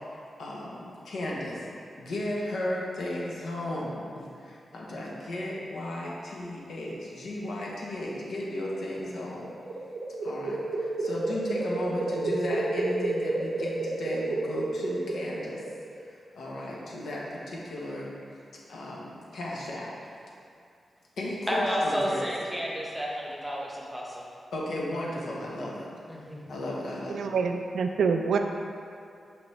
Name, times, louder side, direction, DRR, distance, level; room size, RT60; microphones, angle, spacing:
voice 1, 0.1-9.5 10.2-15.6 15.9-18.1 18.7-19.9 21.2-22.2 24.5-25.9 26.5-27.3, left 1 dB, 90° left, -4 dB, 1.1 m, -35 dB
sound 1, 9.4-15.9, right 2 dB, 50° right, 0.6 m, -31 dB
voice 2, 21.5-24.2 26.1-26.4, equal, 5° right, -3 dB, 0.9 m, -31 dB
voice 3, 27.1-28.4, right 5 dB, 90° right, 5 dB, 0.4 m, -26 dB
6.1 x 4.8 x 3.3 m, 2.4 s
wide cardioid pair, 110°, 0 cm